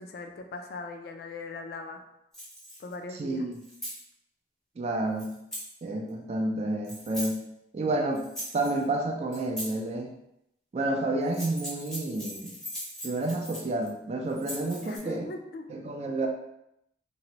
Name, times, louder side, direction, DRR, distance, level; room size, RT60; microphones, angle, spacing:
voice 1, 0.0-2.0 2.8-3.5 14.8-15.7, left 3 dB, 60° left, 5 dB, 0.3 m, -40 dB
sound 1, 2.3-2.9 3.5-4.0 5.2-5.7 6.8-7.3 8.2-8.8 9.3-9.7 11.2-13.9 14.3-15.0, equal, 5° left, 0.6 m, -39 dB
voice 2, 3.2-3.6 4.8-5.3 5.8-7.4 7.7-8.2 8.5-10.1 10.7-12.5 13.0-15.3 15.7-16.3, right 2 dB, 35° right, 2 dB, 0.3 m, -30 dB
2.7 x 2.0 x 2.8 m, 0.80 s
head